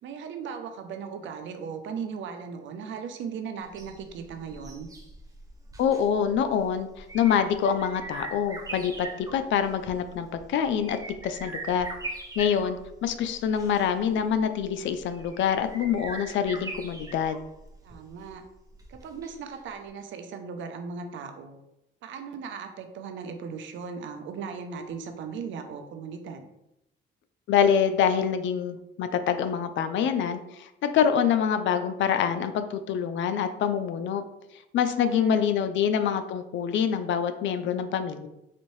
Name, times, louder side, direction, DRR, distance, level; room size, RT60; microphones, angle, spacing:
voice 1, 0.0-4.9 17.8-18.4 18.9-21.6 22.0-26.5 35.0-35.4, right 6 dB, 75° right, 6 dB, 0.6 m, -37 dB
sound 1, 3.6-19.6 19.9-20.0, right 2 dB, 15° right, 0.7 m, -42 dB
voice 2, 5.8-11.0 11.2-11.9 12.4-17.4 27.5-34.2 34.7-38.3, left 8 dB, 70° left, 10 dB, 0.4 m, -26 dB
4.1 x 2.6 x 3.1 m, 0.86 s
cardioid pair, 90°, 20 cm